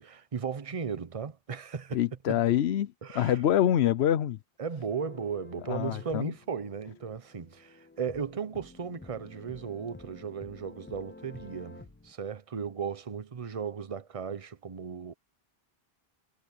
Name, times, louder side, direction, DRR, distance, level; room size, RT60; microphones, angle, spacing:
voice 1, 0.0-2.0 2.3-2.4 3.0-3.4 4.6-15.1, right 6 dB, 35° right, 0.9 m, -36 dB
voice 2, 1.9-4.4 5.7-6.3, left 11 dB, 85° left, 0.9 m, -26 dB
sound 1, 4.9-12.1, left 2 dB, 15° left, 0.4 m, -51 dB
omnidirectional pair, 1.1 m